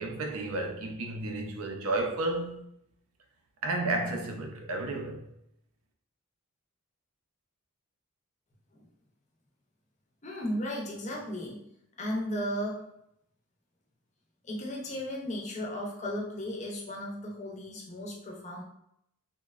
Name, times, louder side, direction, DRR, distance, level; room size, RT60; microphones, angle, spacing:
voice 1, 0.0-2.6 3.6-5.3, right 2 dB, 75° right, 0.5 m, -32 dB
voice 2, 10.2-11.6 12.0-12.9 14.4-18.6, equal, 30° left, 0.5 m, -35 dB
2.9 x 2.1 x 2.3 m
head